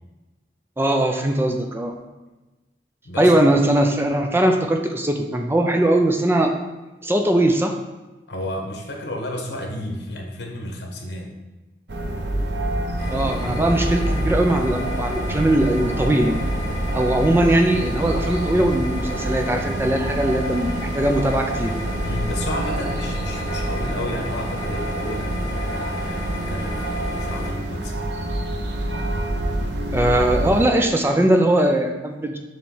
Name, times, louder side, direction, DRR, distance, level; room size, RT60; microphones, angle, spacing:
voice 1, 0.8-2.0 3.2-6.6 7.0-7.7 13.1-16.4 16.9-21.7 29.9-32.4, right 1 dB, 15° right, 3 dB, 0.5 m, -20 dB
voice 2, 8.3-11.3 22.0-28.1, left 1 dB, 80° left, 1 dB, 1.2 m, -32 dB
sound 1, 11.9-30.7, right 1 dB, 85° right, 0.8 m, -27 dB
sound 2, 13.0-27.5, equal, 25° left, 2.2 m, -33 dB
7.1 x 3.2 x 5.5 m, 1.1 s
head